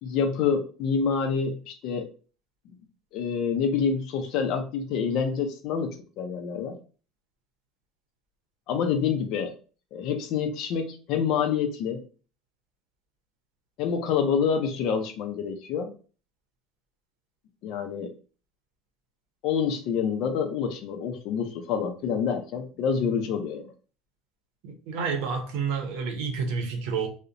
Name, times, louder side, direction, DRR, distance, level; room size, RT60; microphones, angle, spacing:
voice 1, 0.0-2.1 2.7-2.8 3.1-6.8 8.7-9.5 9.9-12.0 13.8-15.9 17.6-18.1 19.4-23.7, left 6 dB, 65° left, 0.4 m, -27 dB
voice 2, 24.6-27.1, right 5 dB, 75° right, 0.6 m, -29 dB
2.5 x 2.0 x 2.7 m
supercardioid pair, 105°, 0 cm